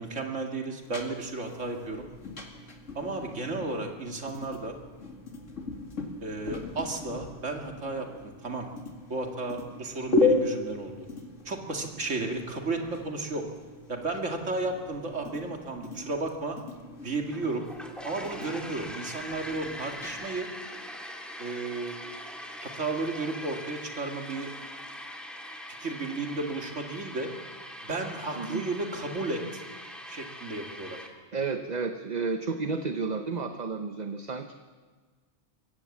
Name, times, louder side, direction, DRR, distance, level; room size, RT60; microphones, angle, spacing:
voice 1, 0.0-2.1 2.9-4.7 6.2-8.7 9.1-10.9 11.4-13.4 13.9-16.6 17.0-17.7 18.0-20.5 21.4-22.0 22.6-24.5 25.7-27.3 27.8-29.6 30.1-31.0, right 3 dB, 80° right, 2 dB, 2.6 m, -33 dB
sound 1, 0.8-20.2, left 3 dB, 85° left, 2.5 m, -35 dB
sound 2, 17.3-31.1, equal, ahead, 2.4 m, -42 dB
voice 2, 31.3-34.5, right 4 dB, 40° right, 6 dB, 0.9 m, -31 dB
22.5 x 16.5 x 7.3 m, 1.5 s
omnidirectional pair, 1.3 m